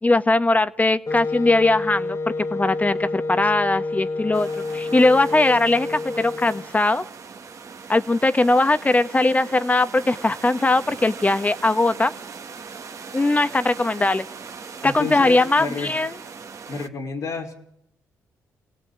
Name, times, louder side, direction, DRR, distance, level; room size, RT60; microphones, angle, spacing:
voice 1, 0.0-2.2 2.5-7.0 7.9-12.1 13.1-14.3 14.8-16.1, left 2 dB, 20° left, 12 dB, 1.5 m, -20 dB
Wind instrument woodwind instrument, 1.1-6.7, left 3 dB, 45° left, 1.9 m, -28 dB
sound 1, 4.3-16.9, right 5 dB, 50° right, 1.8 m, -40 dB
voice 2, 14.8-15.9 16.7-17.5, left 4 dB, 70° left, -4 dB, 3.9 m, -30 dB
28.5 x 17.5 x 9.0 m, 0.79 s
supercardioid pair, 55°, 7 cm